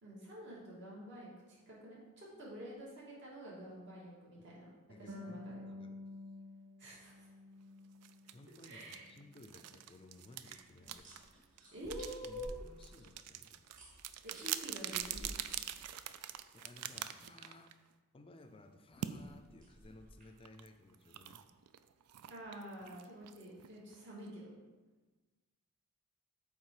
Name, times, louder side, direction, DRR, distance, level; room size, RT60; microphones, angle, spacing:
voice 1, 0.0-4.7 5.0-5.7 6.8-7.3 8.7-9.1 10.5-10.6 11.7-12.6 14.2-15.3 22.3-24.5, equal, 55° right, -6 dB, 2.3 m, -48 dB
voice 2, 4.9-6.0 8.3-11.1 12.3-13.6 16.5-17.7 18.1-21.4, left 2 dB, 25° left, 7 dB, 0.4 m, -58 dB
Harp, 5.1-8.5 8.8-9.9, left 2 dB, 70° right, 1.3 m, -51 dB
sound 1, 8.0-17.9 19.0-19.2 20.5-24.3, right 11 dB, 90° right, 0.4 m, -45 dB
sound 2, 10.4-16.3 18.9-20.4, equal, 35° right, 2.0 m, -54 dB
8.5 x 3.6 x 4.8 m, 1.2 s
head